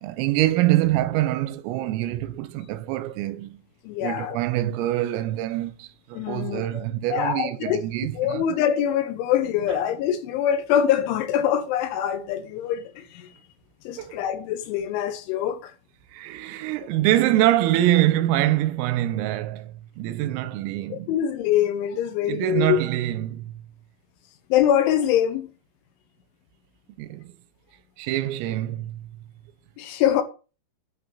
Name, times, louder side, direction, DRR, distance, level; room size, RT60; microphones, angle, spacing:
voice 1, 0.0-3.6 4.0-8.4 14.0-14.2 16.1-21.1 22.3-23.6 27.0-27.3 28.0-29.1, right 14 dB, 85° right, 3.3 m, -25 dB
voice 2, 3.8-4.4 6.1-6.8 7.1-7.8 8.1-13.3 13.8-15.7 20.9-22.8 24.5-25.5 29.8-30.2, left 10 dB, 75° left, 3.2 m, -24 dB
11.5 x 4.4 x 6.6 m
omnidirectional pair, 5.9 m